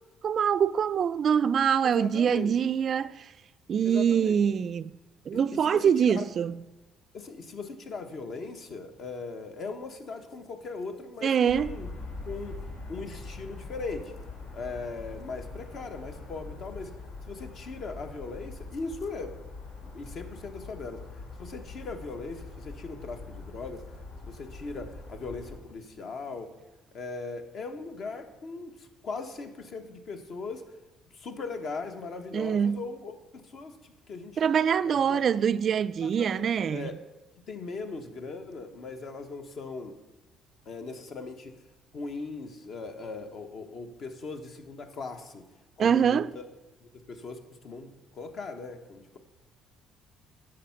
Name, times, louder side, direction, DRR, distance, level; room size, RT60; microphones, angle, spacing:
voice 1, 0.2-3.3 3.7-4.9 5.3-6.6 11.2-11.8 32.3-32.8 34.4-36.9 45.8-46.3, right 7 dB, 50° right, 0.3 m, -24 dB
voice 2, 1.8-2.5 3.8-4.3 5.3-6.3 7.1-11.9 12.2-12.6 12.9-14.1 14.5-16.9 17.3-19.4 19.8-21.0 21.4-23.8 24.3-26.5 26.9-30.6 31.1-33.1 33.4-34.5 34.8-35.2 36.0-37.0 37.5-39.9 40.7-41.6 41.9-45.5 45.8-46.5 46.9-49.2, left 4 dB, 55° left, 1.1 m, -39 dB
sound 1, 11.5-25.6, left 3 dB, 85° left, 2.6 m, -43 dB
10.5 x 6.5 x 5.8 m
cardioid pair, 110°, 0 cm